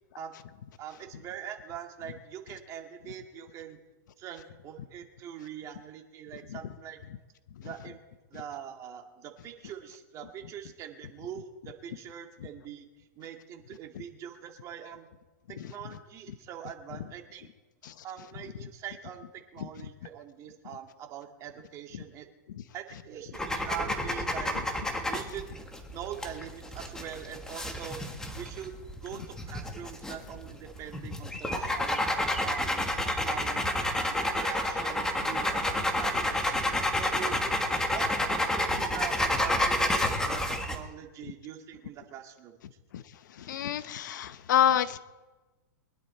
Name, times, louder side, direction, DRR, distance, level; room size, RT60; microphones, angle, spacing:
voice 1, 0.8-3.8 4.2-7.0 7.6-8.0 8.3-12.9 13.2-15.1 15.5-17.5 18.0-22.3 22.7-24.6 25.1-28.0 28.3-28.7 29.0-32.0 32.4-32.9 33.2-33.6 33.9-36.6 36.9-37.5 37.9-42.6, right 9 dB, 30° right, 4 dB, 1.9 m, -43 dB
sound 1, 23.3-40.8, left 1 dB, 5° left, 1.5 m, -30 dB
voice 2, 43.5-45.0, left 10 dB, 70° left, 13 dB, 0.9 m, -26 dB
23.5 x 10.5 x 4.3 m, 1.2 s
hypercardioid pair, 140°, 10 cm